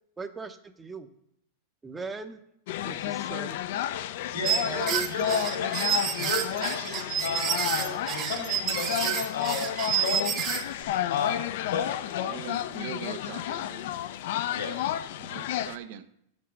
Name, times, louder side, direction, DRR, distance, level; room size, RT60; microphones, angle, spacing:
voice 1, 0.2-1.1 1.8-2.4 2.8-3.6 4.7-5.1, right 3 dB, 15° right, 0.6 m, -38 dB
sound 1, 2.7-15.8, left 11 dB, 65° left, 0.4 m, -32 dB
voice 2, 4.3-10.3 11.1-11.4 11.6-11.8 12.1-12.2 14.5-14.8, left 5 dB, 80° left, 2.4 m, -33 dB
sound 2, 4.4-10.8, right 8 dB, 35° right, 1.1 m, -29 dB
voice 3, 12.3-14.0 15.2-16.1, right 10 dB, 60° right, 0.6 m, -41 dB
6.7 x 6.0 x 7.5 m
supercardioid pair, 135°, 0 cm